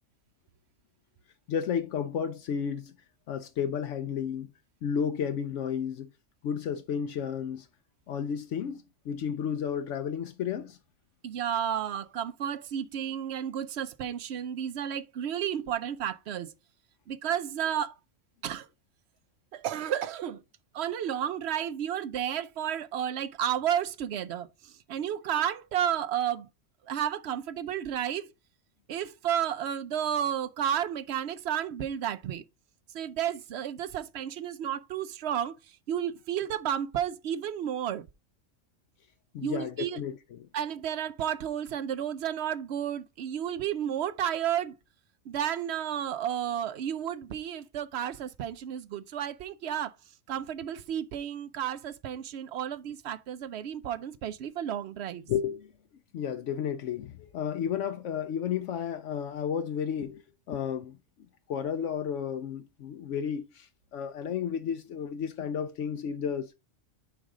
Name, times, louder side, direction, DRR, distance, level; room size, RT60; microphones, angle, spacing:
voice 1, 1.5-2.9 3.3-4.5 4.8-6.1 6.4-7.7 8.1-10.8 39.3-40.5 55.3-55.7 56.1-60.2 60.5-61.0 61.5-66.5, left 8 dB, 75° left, 0.9 m, -32 dB
voice 2, 11.2-16.5 17.1-17.9 18.4-18.7 19.5-20.4 20.7-26.5 26.9-28.3 28.9-32.4 32.9-38.1 39.4-40.0 40.5-44.8 45.3-49.9 50.3-55.3, right 9 dB, 65° right, 0.8 m, -32 dB
7.1 x 5.0 x 3.7 m
omnidirectional pair, 1.3 m